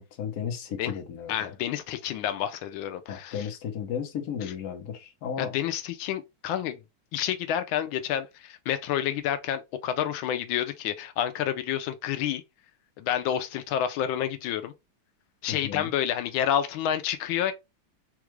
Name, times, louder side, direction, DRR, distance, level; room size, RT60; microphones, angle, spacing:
voice 1, 0.0-1.5 3.1-5.5 15.5-15.9, left 8 dB, 60° left, 1.3 m, -34 dB
voice 2, 1.3-3.5 5.4-6.8 7.1-12.4 13.0-14.7 15.4-17.5, left 10 dB, 85° left, 1.4 m, -29 dB
4.4 x 2.4 x 3.0 m
omnidirectional pair, 2.1 m